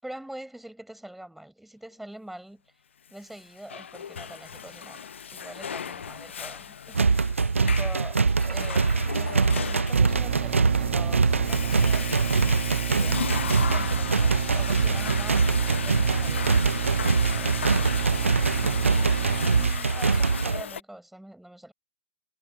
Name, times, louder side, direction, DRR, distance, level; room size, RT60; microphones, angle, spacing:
voice 1, 0.0-2.7 3.1-7.3 7.6-12.1 13.0-16.6 17.2-17.6 18.5-21.7, right 1 dB, ahead, 5.0 m, -44 dB
Water / Toilet flush, 3.3-20.8, left 7 dB, 70° left, 0.9 m, -36 dB
sound 1, 6.9-20.6, right 4 dB, 85° right, 0.6 m, -23 dB
sound 2, 9.9-19.7, right 16 dB, 45° right, 1.3 m, -33 dB
figure-of-eight pair, 120°, 7 cm